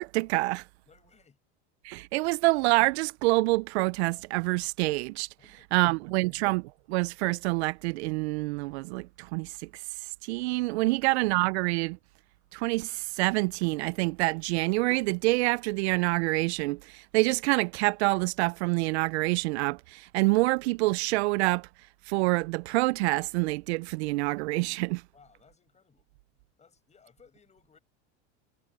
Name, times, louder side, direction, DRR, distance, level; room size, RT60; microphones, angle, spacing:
voice 1, 0.0-0.6 1.8-5.3 5.7-6.6 6.9-9.7 10.2-12.0 12.5-21.7 22.1-25.0, right 23 dB, 75° right, 0.5 m, -27 dB
voice 2, 0.9-1.4 5.4-6.4 10.9-11.0 25.1-26.1 26.6-27.8, left 6 dB, 20° left, 7.1 m, -61 dB
supercardioid pair, 120°, 33 cm